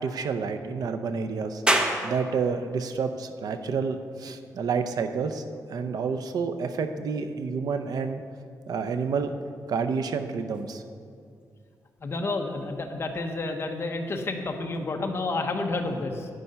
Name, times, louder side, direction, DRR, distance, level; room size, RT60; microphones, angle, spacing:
voice 1, 0.0-1.6 2.0-5.4 5.7-8.2 8.7-9.3 9.7-10.8, right 5 dB, 70° right, 8 dB, 0.7 m, -29 dB
sound 1, 1.7-14.8, right 1 dB, 15° right, 0.9 m, -37 dB
voice 2, 12.0-16.3, left 3 dB, 40° left, 4 dB, 1.0 m, -30 dB
10.5 x 9.6 x 5.6 m, 2.3 s
wide cardioid pair, 155°, 7 cm